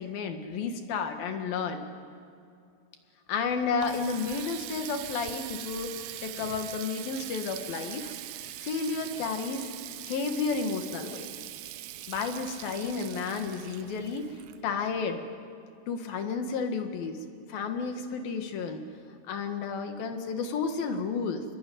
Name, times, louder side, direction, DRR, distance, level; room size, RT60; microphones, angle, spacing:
voice 1, 0.0-1.8 3.3-8.1 8.6-9.7 10.0-11.3 12.1-15.2 15.9-17.2 17.5-18.8 19.3-21.4, left 5 dB, 70° left, 6 dB, 3.4 m, -32 dB
Water tap faucet, 3.4-15.0, right 14 dB, 80° right, 2.5 m, -42 dB
26.0 x 22.0 x 9.3 m, 2.4 s
omnidirectional pair, 4.5 m